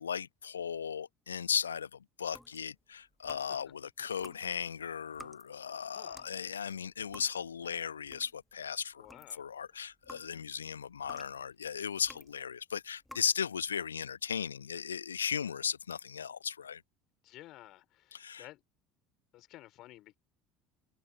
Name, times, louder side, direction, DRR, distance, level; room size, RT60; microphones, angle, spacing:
voice 1, 0.0-9.1 9.3-16.8 18.1-18.4, left 7 dB, 80° left, 0.9 m, -36 dB
sound 1, 2.3-3.7 4.1-8.6 8.9-12.4 13.0-13.4, left 1 dB, 5° left, 1.1 m, -54 dB
voice 2, 5.9-6.3 9.0-9.4 17.2-18.6 19.3-20.1, left 16 dB, 50° left, 4.1 m, -53 dB
figure-of-eight pair, 65°, 0 cm